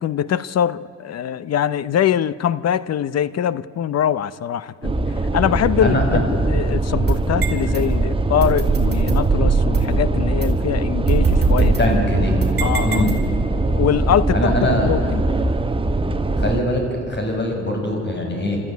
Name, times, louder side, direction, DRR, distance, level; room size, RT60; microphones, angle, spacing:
voice 1, 0.0-4.9 5.3-11.9 12.6-13.1 13.7-15.3, left 9 dB, 55° left, 18 dB, 0.7 m, -23 dB
sound 1, 4.8-16.6, right 2 dB, 15° right, 1.2 m, -21 dB
voice 2, 5.8-6.2 11.6-12.4 12.8-13.1 14.3-14.9 16.4-18.6, left 1 dB, 35° left, 2 dB, 6.3 m, -22 dB
sound 2, 7.1-7.8 8.4-10.0 10.4-10.5 11.1-13.5, right 4 dB, 35° right, 4.2 m, -21 dB
26.5 x 13.5 x 9.3 m, 2.8 s
cardioid pair, 90°, 30 cm